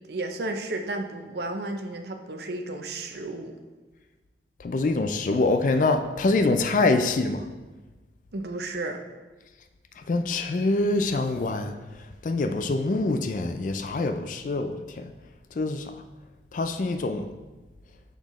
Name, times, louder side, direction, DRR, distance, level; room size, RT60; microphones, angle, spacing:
voice 1, 0.1-3.6 8.3-9.0, right 2 dB, 65° right, 6 dB, 0.6 m, -33 dB
voice 2, 4.6-7.5 10.1-11.7 12.2-15.1 15.6-15.8 16.5-17.3, left 2 dB, 45° left, 8 dB, 0.4 m, -25 dB
9.9 x 4.1 x 3.1 m, 1.2 s
head